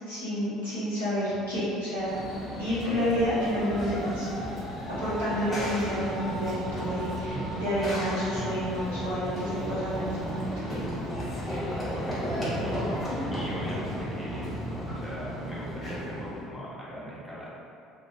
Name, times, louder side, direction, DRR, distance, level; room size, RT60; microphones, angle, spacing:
voice 1, 0.1-2.2 2.6-4.3 4.9-10.8 12.8-13.4, equal, 85° left, -14 dB, 1.3 m, -30 dB
Run / Train, 2.0-16.4, equal, 30° left, 1.2 m, -34 dB
voice 2, 11.5-14.5 14.9-17.5, equal, 5° left, -7 dB, 0.9 m, -40 dB
3.3 x 2.3 x 2.9 m, 2.6 s
figure-of-eight pair, 60°, 0 cm